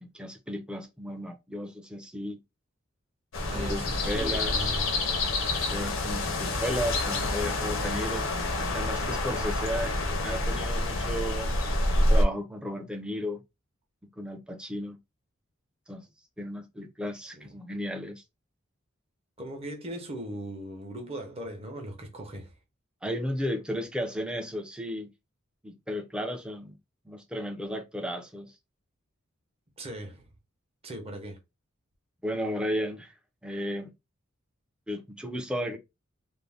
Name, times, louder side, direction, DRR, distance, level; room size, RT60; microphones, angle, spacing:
voice 1, 0.0-2.4 3.5-4.7 5.7-8.3 8.7-9.9 10.2-11.6 11.9-13.4 14.2-15.0 15.9-16.0 16.4-18.2 23.0-25.1 25.6-26.8 27.1-28.5 32.2-33.1 33.4-33.9 34.9-35.8, equal, 5° right, 0.4 m, -34 dB
sound 1, 3.3-12.2, left 2 dB, 65° left, 0.6 m, -28 dB
voice 2, 3.5-4.9 17.4-17.7 19.4-22.5 29.8-30.3 30.8-31.4, right 1 dB, 30° right, 0.8 m, -39 dB
2.5 x 2.0 x 3.3 m
head